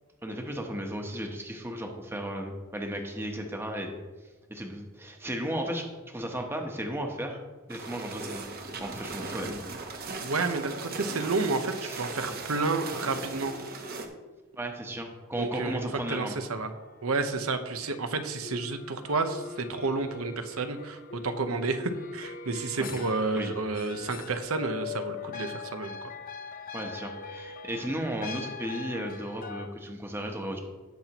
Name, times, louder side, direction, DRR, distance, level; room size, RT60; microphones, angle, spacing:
voice 1, 0.2-3.9 4.5-7.4 7.7-8.5 8.8-9.6 11.8-12.2 14.6-16.3 22.8-23.0 23.3-23.5 26.7-30.6, right 1 dB, 10° right, 2 dB, 1.0 m, -35 dB
sound 1, 7.7-14.1, right 3 dB, 45° right, 1.0 m, -38 dB
voice 2, 10.2-13.5 15.3-16.7 17.0-26.0, right 3 dB, 85° right, 8 dB, 0.9 m, -30 dB
sound 2, 15.5-17.9 18.4-29.7, left 5 dB, 40° left, 0.7 m, -42 dB
17.5 x 5.9 x 3.0 m, 1.3 s
head